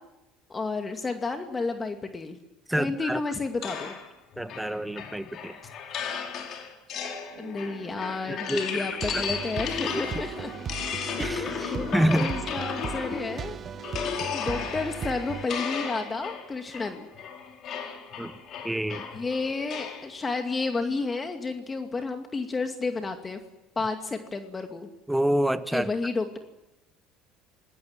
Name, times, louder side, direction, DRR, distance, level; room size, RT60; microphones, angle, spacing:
voice 1, 0.5-2.4 2.8-4.0 7.4-10.5 11.4-13.6 14.3-17.1 19.1-23.4 23.8-24.9 25.7-26.4, left 3 dB, 25° left, 5 dB, 2.4 m, -31 dB
voice 2, 2.7-3.2 4.4-5.6 8.3-8.8 9.1-9.2 9.9-10.0 11.2-11.5 11.9-12.3 18.2-18.3 18.6-19.1 25.1-25.9, right 1 dB, 5° right, 13 dB, 1.3 m, -27 dB
sound 1, 3.6-13.4 13.8-20.1, left 7 dB, 55° left, 4.6 m, -35 dB
sound 2, 7.3-16.1, right 5 dB, 70° right, 4.9 m, -45 dB
sound 3, 9.0-15.5, right 7 dB, 40° right, 1.1 m, -37 dB
27.5 x 20.0 x 7.5 m, 0.97 s
hypercardioid pair, 70°, 0 cm